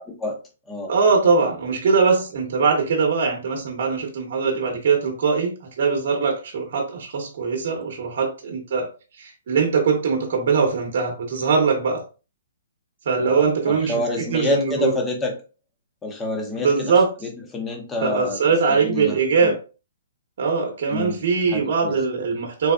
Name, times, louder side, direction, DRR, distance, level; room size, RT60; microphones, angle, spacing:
voice 1, 0.9-8.9 9.2-12.0 13.0-14.9 16.6-17.1 18.0-19.6 20.4-22.7, right 5 dB, 45° right, 0.9 m, -21 dB
voice 2, 13.2-15.3 16.0-16.9 17.2-18.4 18.7-19.5 20.9-22.0, left 2 dB, 10° left, 0.6 m, -28 dB
3.4 x 3.4 x 2.3 m
hypercardioid pair, 175°, 0 cm